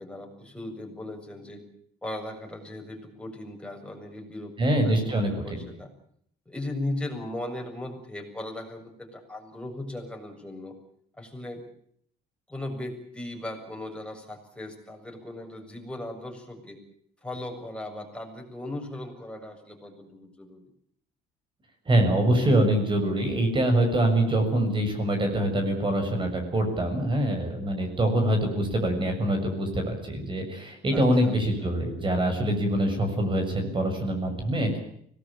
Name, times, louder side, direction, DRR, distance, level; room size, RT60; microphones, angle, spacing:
voice 1, 0.0-1.6 2.0-5.0 5.3-5.9 6.5-10.7 11.2-11.6 12.5-16.8 17.2-20.7 30.9-31.4, left 1 dB, 5° left, 2 dB, 7.1 m, -37 dB
voice 2, 4.6-5.4 21.9-34.8, right 1 dB, 30° right, 5 dB, 7.1 m, -24 dB
25.0 x 19.0 x 8.9 m, 0.67 s
cardioid pair, 110°, 17 cm